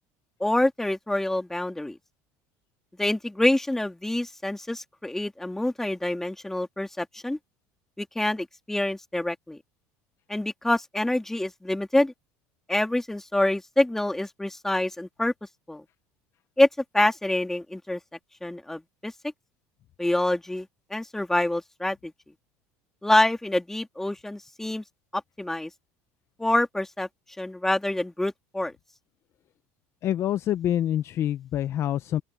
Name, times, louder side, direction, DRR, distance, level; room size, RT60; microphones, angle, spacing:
voice 1, 0.4-2.0 3.0-7.4 8.0-9.6 10.3-12.1 12.7-15.3 15.7-15.8 16.6-16.7 16.9-18.0 18.4-19.1 20.0-22.1 23.0-24.8 25.1-25.7 26.4-27.1 27.4-28.7, left 1 dB, 5° left, 2.8 m, -26 dB
voice 2, 30.0-32.2, left 11 dB, 45° left, 0.8 m, -26 dB
open air
supercardioid pair, 120°, 6 cm